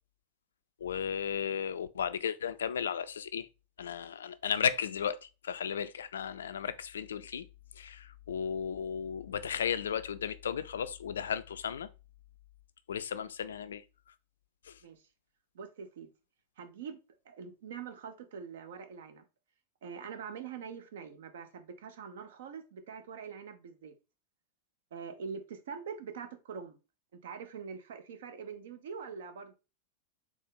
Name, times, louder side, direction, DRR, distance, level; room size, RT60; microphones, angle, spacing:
voice 1, 0.8-3.5 3.8-5.2 5.4-7.5 7.8-11.9 12.9-13.8 14.7-14.8, left 7 dB, 65° left, 0.3 m, -34 dB
voice 2, 15.5-16.1 16.6-17.0 17.2-19.2 19.8-23.9 24.9-26.8 27.2-29.5, right 6 dB, 60° right, 0.7 m, -44 dB
4.1 x 2.9 x 3.7 m
figure-of-eight pair, 90°, 0 cm